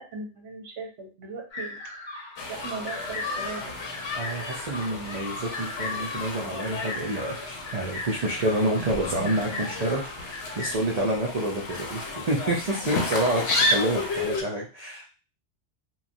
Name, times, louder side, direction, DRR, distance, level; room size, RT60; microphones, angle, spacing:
voice 1, 0.0-4.1 4.8-4.9 12.7-13.0 14.0-14.2, right 4 dB, 70° right, 2 dB, 1.0 m, -39 dB
sound 1, 1.5-10.8, left 2 dB, 30° left, 0.6 m, -39 dB
sound 2, 2.4-14.4, left 2 dB, 65° left, 0.8 m, -32 dB
voice 2, 4.1-15.1, right 1 dB, 55° right, -2 dB, 0.4 m, -28 dB
2.9 x 2.3 x 2.5 m, 0.35 s
omnidirectional pair, 1.3 m